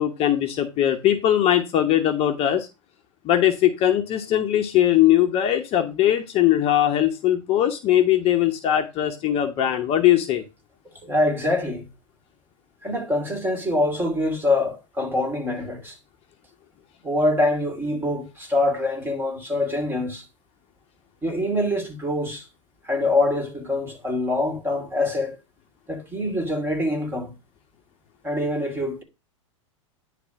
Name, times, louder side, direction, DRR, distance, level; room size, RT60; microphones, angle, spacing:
voice 1, 0.0-2.7 3.2-10.4, left 11 dB, 35° left, 1.1 m, -20 dB
voice 2, 11.0-11.9 12.8-16.0 17.0-20.2 21.2-22.5 22.8-25.4 25.9-27.3 28.2-29.0, left 1 dB, 10° right, 2.7 m, -24 dB
10.0 x 3.4 x 6.2 m
hypercardioid pair, 100°, 17 cm